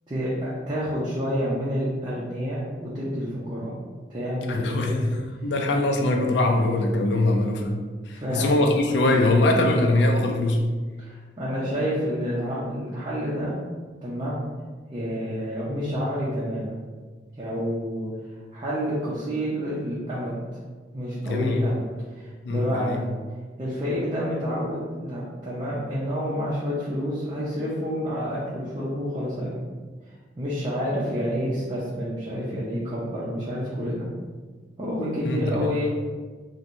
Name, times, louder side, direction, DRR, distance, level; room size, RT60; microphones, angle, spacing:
voice 1, 0.1-3.7 4.1-5.0 8.1-8.5 8.8-8.9 11.0-13.5 14.0-14.4 14.9-16.7 17.4-18.1 18.5-20.4 20.9-21.9 22.1-23.0 23.6-29.6 30.4-34.1 34.8-35.9, equal, 25° right, -8 dB, 0.6 m, -29 dB
voice 2, 4.5-10.7 21.2-21.7 22.4-23.0 35.2-35.7, left 2 dB, 65° left, 3 dB, 0.4 m, -23 dB
4.4 x 2.2 x 2.6 m, 1.4 s
head